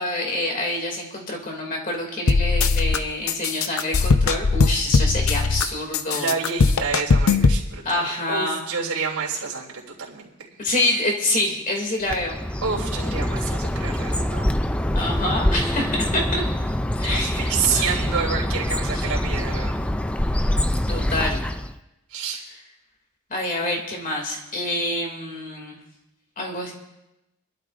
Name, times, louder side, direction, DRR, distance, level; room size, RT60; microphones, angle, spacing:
voice 1, 0.0-6.3 7.8-8.6 10.6-12.4 14.9-16.4 17.0-18.4 18.9-19.0 20.9-21.5 23.3-25.8 26.4-26.7, left 1 dB, 35° left, 1 dB, 2.6 m, -27 dB
sound 1, 2.3-3.0 3.3-5.6 5.9-7.6, left 4 dB, 70° left, 0.7 m, -19 dB
voice 2, 6.1-8.0 8.3-9.7 10.0-10.3 12.6-14.4 17.0-19.8 22.1-22.4, right 6 dB, 85° right, -3 dB, 3.3 m, -28 dB
Bird, 12.1-21.8, left 1 dB, 5° left, 0.3 m, -25 dB
25.0 x 12.0 x 2.6 m, 0.93 s
head